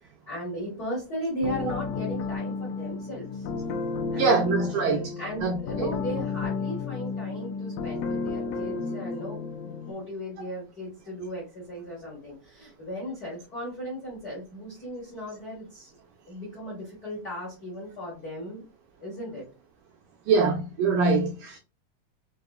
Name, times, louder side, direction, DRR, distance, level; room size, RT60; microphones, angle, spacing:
voice 1, 0.0-3.5 4.1-4.5 5.2-15.9 16.3-18.6 19.0-19.4, equal, 65° left, 0.9 m, -36 dB
sound 1, 1.4-9.9, left 4 dB, 80° left, 1.9 m, -32 dB
voice 2, 4.2-5.2 5.4-5.9 20.3-21.6, right 4 dB, 85° right, 1.9 m, -24 dB
5.7 x 2.6 x 2.3 m
omnidirectional pair, 4.3 m